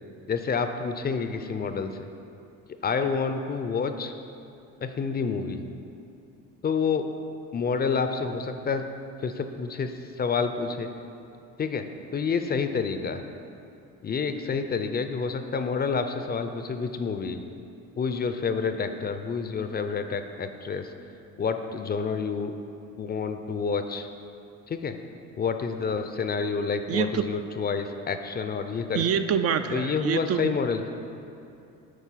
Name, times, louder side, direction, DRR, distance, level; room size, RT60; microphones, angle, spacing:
voice 1, 0.3-2.1 2.8-4.1 4.8-5.6 6.6-7.1 7.5-8.9 9.2-10.9 11.6-13.2 14.0-17.4 18.0-20.9 21.4-22.5 23.0-24.1 24.7-25.0 25.4-29.2 29.7-30.9, left 5 dB, 30° left, 8 dB, 0.5 m, -28 dB
voice 2, 26.9-27.2 28.9-30.6, right 7 dB, 45° right, 9 dB, 0.4 m, -26 dB
8.2 x 4.4 x 5.7 m, 2.7 s
supercardioid pair, 90°, 32 cm